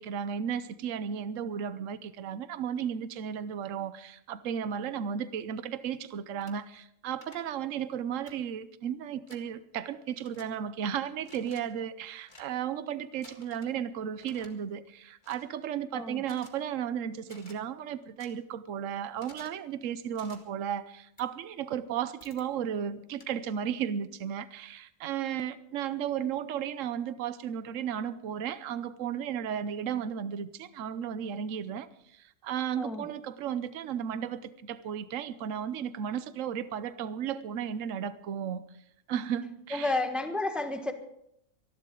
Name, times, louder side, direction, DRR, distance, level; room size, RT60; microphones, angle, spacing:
voice 1, 0.0-31.9 32.1-38.6 39.1-39.9, right 8 dB, 70° right, 14 dB, 1.1 m, -34 dB
sound 1, 6.4-6.5 7.2-7.4 8.3-8.4 9.3-9.4 10.2-10.4 11.2-11.6 12.2-12.5 13.2-13.7 14.2-14.5 15.2-15.4 16.2-16.5 17.2-17.6 18.2-18.3 19.2-19.6 20.1-20.4 21.2-21.3 22.2-22.4 23.2-23.3, left 2 dB, 35° left, 1.9 m, -53 dB
voice 2, 39.7-40.9, left 2 dB, ahead, 6 dB, 1.2 m, -31 dB
25.0 x 11.5 x 3.8 m, 0.76 s
omnidirectional pair, 1.4 m